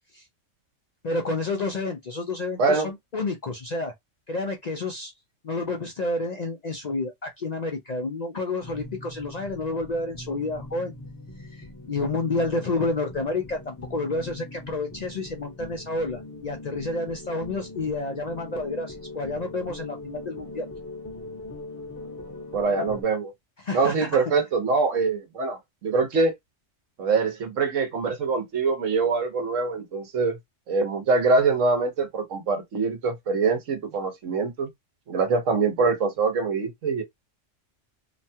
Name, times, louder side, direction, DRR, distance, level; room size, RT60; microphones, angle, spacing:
voice 1, 1.0-3.9 4.3-5.1 5.4-10.9 11.4-20.7 23.6-24.2, left 2 dB, 55° left, 0.5 m, -30 dB
voice 2, 2.6-2.9 22.5-23.3 23.7-26.3 27.0-30.4 30.7-34.7 35.1-37.0, right 4 dB, 85° right, 1.3 m, -24 dB
sound 1, 8.6-23.0, left 2 dB, 15° left, 0.7 m, -41 dB
3.0 x 2.2 x 2.7 m
omnidirectional pair, 1.3 m